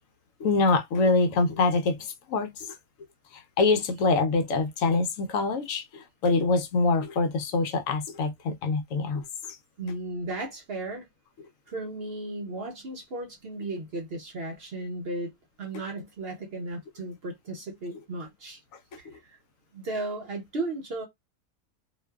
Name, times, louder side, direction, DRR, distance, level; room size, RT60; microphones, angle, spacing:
voice 1, 0.4-2.0 2.3-2.7 3.6-9.2, left 3 dB, 75° left, 0.9 m, -25 dB
voice 2, 9.8-11.1 11.7-15.3 15.6-18.6 19.0-19.4 19.7-21.0, right 2 dB, 55° right, 0.8 m, -35 dB
2.5 x 2.2 x 2.2 m
omnidirectional pair, 1.5 m